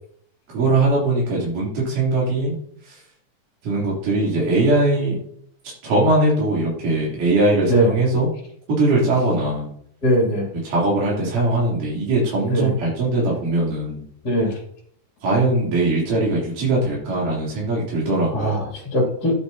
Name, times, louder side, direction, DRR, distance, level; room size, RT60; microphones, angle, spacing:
voice 1, 0.5-2.5 2.9-3.0 3.6-5.2 5.8-8.3 8.7-9.7 10.6-14.0 15.2-18.6, right 2 dB, 75° right, -5 dB, 4.9 m, -20 dB
voice 2, 10.0-10.5 12.5-12.7 14.2-14.6 18.3-19.3, equal, 30° left, -1 dB, 3.0 m, -20 dB
12.0 x 10.5 x 2.8 m, 0.66 s
omnidirectional pair, 3.7 m